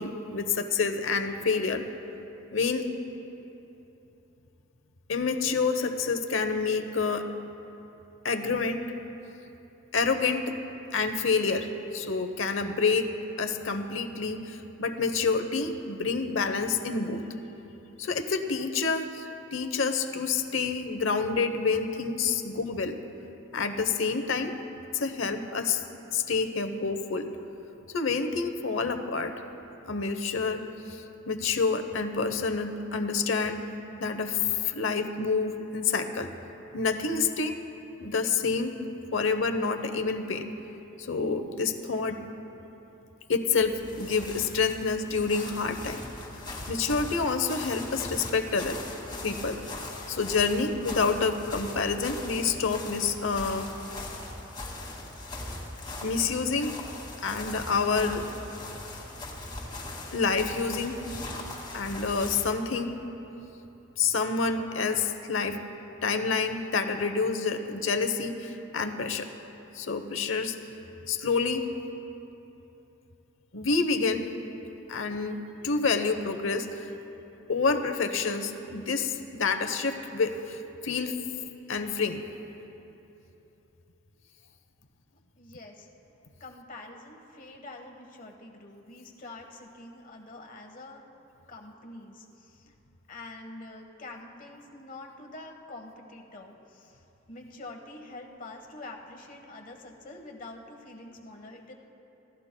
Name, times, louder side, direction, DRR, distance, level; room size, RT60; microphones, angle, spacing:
voice 1, 0.0-1.8 2.5-2.9 5.1-7.3 8.2-8.9 9.9-10.5 10.9-13.1 13.4-17.2 18.0-23.0 23.5-24.5 24.9-25.8 26.1-27.3 27.9-29.3 29.9-33.6 34.0-36.3 36.7-37.5 38.0-38.8 39.1-40.5 41.0-42.2 43.3-46.0 46.7-48.8 49.2-49.6 50.1-53.7 56.0-56.8 57.2-58.3 60.1-61.0 61.7-62.9 64.0-65.6 66.0-69.3 69.7-70.6 71.1-71.7 73.5-74.3 74.9-76.9 77.5-81.1 81.7-82.2, left 4 dB, 70° left, 8 dB, 0.9 m, -28 dB
sound 1, 43.5-62.6, left 2 dB, 20° left, 2.2 m, -40 dB
voice 2, 85.4-85.9 86.4-91.0 91.5-92.7 93.1-97.0 97.3-101.7, left 2 dB, 40° left, 2 dB, 1.3 m, -46 dB
27.5 x 16.0 x 2.2 m, 3.0 s
head